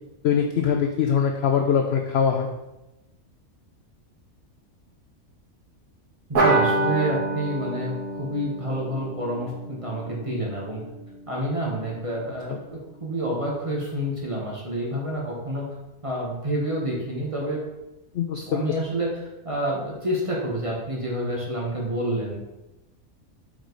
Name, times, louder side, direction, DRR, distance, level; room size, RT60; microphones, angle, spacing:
voice 1, 0.2-2.5 12.5-12.6 18.1-18.6, left 7 dB, 65° left, 4 dB, 0.6 m, -22 dB
voice 2, 6.3-10.8 11.3-15.6 16.0-17.6 18.5-22.4, right 1 dB, 25° right, -3 dB, 1.1 m, -28 dB
sound 1, 6.3-11.3, right 2 dB, 75° right, 1.8 m, -27 dB
5.0 x 4.8 x 3.9 m, 0.99 s
omnidirectional pair, 1.5 m